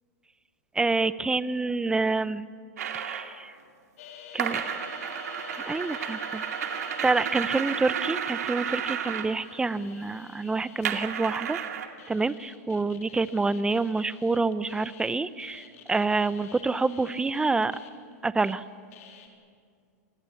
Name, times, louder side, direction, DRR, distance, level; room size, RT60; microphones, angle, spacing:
voice 1, 0.7-2.5 2.9-3.5 4.3-4.6 5.5-6.4 7.0-11.6 12.1-17.8 18.2-18.6, right 3 dB, 10° right, 16 dB, 0.8 m, -27 dB
sound 1, 2.8-3.3 4.4-9.3 10.8-11.9, right 8 dB, 80° right, 2.4 m, -32 dB
sound 2, 4.0-18.5 18.9-19.3, left 8 dB, 70° left, 3.7 m, -48 dB
27.5 x 20.0 x 8.5 m, 2.2 s
hypercardioid pair, 120°, 9 cm